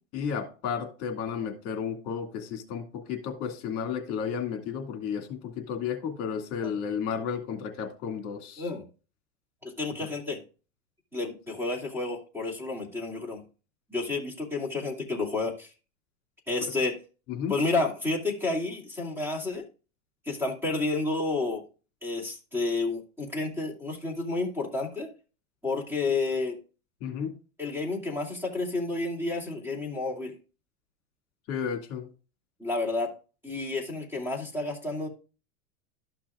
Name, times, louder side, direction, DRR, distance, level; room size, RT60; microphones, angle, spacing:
voice 1, 0.1-8.6 17.3-17.5 27.0-27.3 31.5-32.1, left 7 dB, 40° left, 2.2 m, -33 dB
voice 2, 9.6-10.4 11.1-13.4 13.9-15.7 16.5-16.9 17.5-19.6 20.2-21.6 22.0-25.1 25.6-26.6 27.6-30.3 32.6-33.1 33.4-35.1, left 3 dB, 5° right, 2.5 m, -30 dB
13.0 x 6.0 x 2.4 m
supercardioid pair, 155°, 38 cm